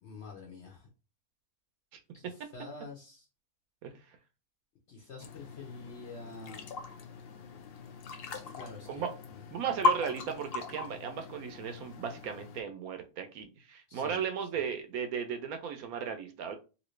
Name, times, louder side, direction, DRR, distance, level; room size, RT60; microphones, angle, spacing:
voice 1, 0.0-0.9 2.1-3.3 4.9-6.6 8.3-9.1 13.9-14.2, left 3 dB, 55° left, 0 dB, 0.9 m, -47 dB
voice 2, 3.8-4.2 8.9-9.1 9.5-16.6, right 7 dB, 75° right, 7 dB, 1.0 m, -36 dB
sound 1, 5.2-12.6, left 3 dB, 85° left, 0.5 m, -37 dB
3.0 x 2.7 x 3.1 m, 0.32 s
omnidirectional pair, 1.6 m